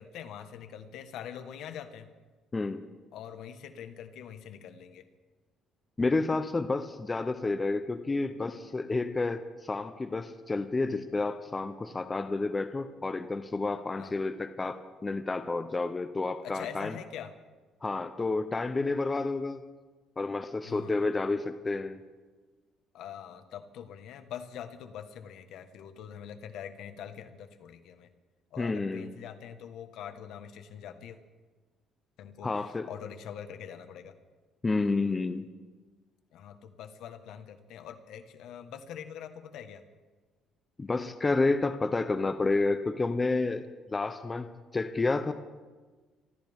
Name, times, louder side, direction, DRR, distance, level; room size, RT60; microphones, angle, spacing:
voice 1, 0.0-2.1 3.1-5.0 14.0-14.1 16.4-17.4 20.6-21.0 22.9-28.1 28.5-31.2 32.2-34.1 36.3-39.8, left 8 dB, 70° left, 7 dB, 1.4 m, -44 dB
voice 2, 2.5-2.8 6.0-16.9 17.8-19.6 20.2-22.0 28.6-29.1 32.4-32.9 34.6-35.5 40.8-43.6 43.9-45.3, left 3 dB, 20° left, 9 dB, 0.7 m, -30 dB
26.0 x 13.0 x 3.6 m, 1.3 s
cardioid pair, 125°, 0 cm